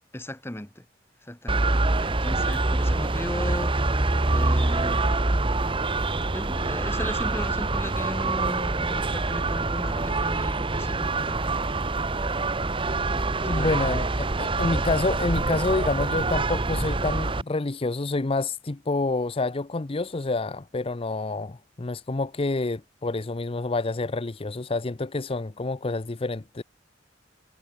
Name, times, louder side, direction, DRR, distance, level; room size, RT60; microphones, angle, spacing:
voice 1, 0.1-0.8 1.2-3.7 4.2-5.2 6.3-11.7 13.4-13.9, left 1 dB, 15° left, 1.6 m, -36 dB
sound 1, 1.5-17.4, right 2 dB, 30° right, 1.1 m, -25 dB
voice 2, 13.4-26.6, left 3 dB, 30° left, 0.6 m, -28 dB
head